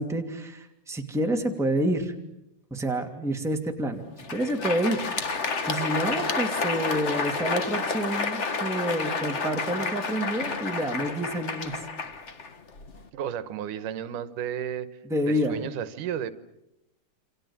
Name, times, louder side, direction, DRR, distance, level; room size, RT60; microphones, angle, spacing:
voice 1, 0.0-2.1 2.7-4.0 4.3-5.0 5.7-11.8 15.1-15.6, right 1 dB, ahead, 3 dB, 2.2 m, -28 dB
Crowd, 4.1-13.0, left 4 dB, 45° left, 0.8 m, -30 dB
voice 2, 13.1-14.9 15.3-16.3, right 9 dB, 85° right, 13 dB, 2.7 m, -32 dB
28.0 x 27.0 x 7.4 m, 0.87 s
omnidirectional pair, 3.6 m